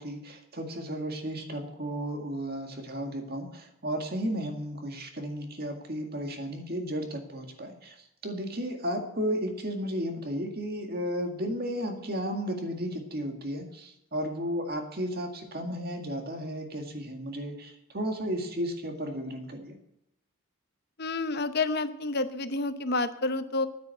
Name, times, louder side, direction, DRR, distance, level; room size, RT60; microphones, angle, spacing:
voice 1, 0.0-19.7, equal, 45° right, 4 dB, 2.0 m, -34 dB
voice 2, 21.0-23.7, left 3 dB, 50° left, 11 dB, 0.8 m, -29 dB
9.9 x 9.3 x 7.8 m, 0.83 s
head